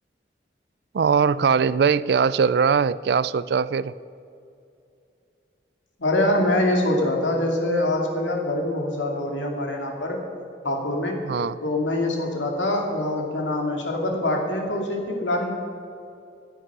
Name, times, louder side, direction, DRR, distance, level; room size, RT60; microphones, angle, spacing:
voice 1, 0.9-3.9 11.2-11.6, right 6 dB, 60° right, 17 dB, 0.3 m, -21 dB
voice 2, 6.0-10.2 10.6-11.2 11.6-15.5, left 1 dB, 85° left, 1 dB, 2.4 m, -24 dB
15.0 x 9.4 x 6.1 m, 2.6 s
head